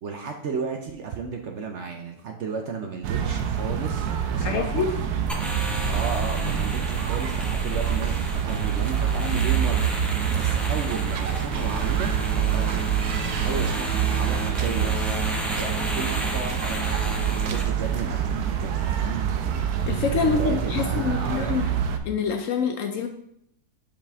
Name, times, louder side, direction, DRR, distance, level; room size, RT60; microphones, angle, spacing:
voice 1, 0.0-4.9 5.9-12.9 13.4-15.0 15.5-17.0 17.3-19.3 20.1-21.8, right 5 dB, 60° right, 3 dB, 0.8 m, -34 dB
sound 1, 3.0-22.0, right 8 dB, 80° right, 1.1 m, -26 dB
voice 2, 4.4-4.9 19.9-21.7 22.0-23.1, left 5 dB, 65° left, 5 dB, 0.8 m, -26 dB
sound 2, 5.3-17.6, equal, ahead, 0.3 m, -34 dB
5.2 x 5.0 x 3.5 m, 0.74 s
omnidirectional pair, 1.6 m